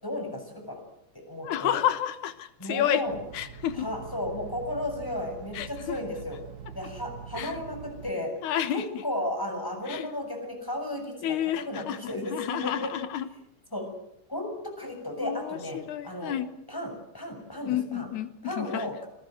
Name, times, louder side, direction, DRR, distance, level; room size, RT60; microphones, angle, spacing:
voice 1, 0.0-0.8 1.1-1.8 2.6-3.2 3.7-6.4 6.7-8.3 8.7-12.9 13.7-13.9 14.3-16.3 16.7-18.1 18.4-19.1, left 1 dB, 5° left, 4 dB, 7.3 m, -34 dB
voice 2, 1.4-3.0 3.3-3.9 5.5-6.0 7.4-7.6 8.4-8.8 9.9-10.1 11.2-12.0 12.3-13.3 15.2-16.5 17.7-18.9, left 11 dB, 90° left, 12 dB, 2.7 m, -30 dB
sound 1, 3.0-8.1, right 7 dB, 45° right, 1.4 m, -44 dB
27.0 x 20.5 x 7.9 m, 0.75 s
omnidirectional pair, 3.3 m